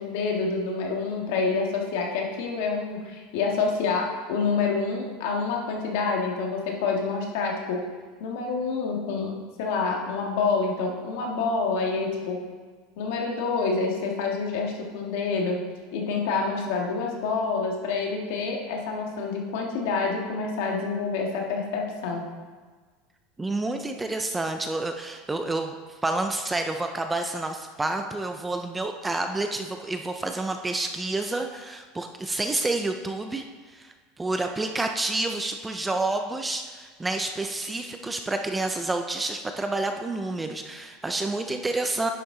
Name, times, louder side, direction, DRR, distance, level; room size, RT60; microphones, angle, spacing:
voice 1, 0.0-7.8 8.2-12.4 13.0-15.6 15.9-22.3, left 4 dB, 60° left, 0 dB, 1.6 m, -27 dB
voice 2, 23.4-25.7 26.0-33.4 33.7-42.1, right 2 dB, 10° right, 5 dB, 0.3 m, -29 dB
10.0 x 6.9 x 3.8 m, 1.4 s
supercardioid pair, 180°, 0 cm